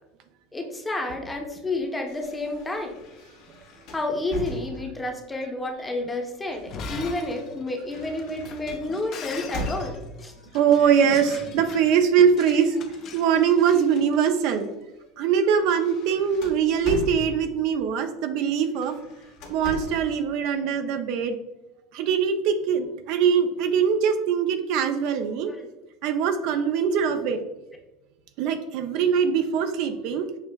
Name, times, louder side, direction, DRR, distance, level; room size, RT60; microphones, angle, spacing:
voice 1, 0.5-3.0 3.9-10.3 25.5-25.7, left 2 dB, 15° left, 3 dB, 0.7 m, -30 dB
sound 1, 2.1-5.2 6.1-10.3 11.3-11.7 12.0-14.3 14.8-15.0 15.4-17.7 18.7-20.2, left 1 dB, 65° left, 0.9 m, -39 dB
Shatter, 6.6-14.6, left 5 dB, 45° left, 0.5 m, -41 dB
voice 2, 10.5-12.8 13.1-14.7 15.2-19.0 19.5-21.4 21.9-25.5 26.0-27.4 28.4-30.3, right 7 dB, 60° right, 7 dB, 0.4 m, -22 dB
6.3 x 2.4 x 2.2 m, 1.0 s
hypercardioid pair, 90°, 0 cm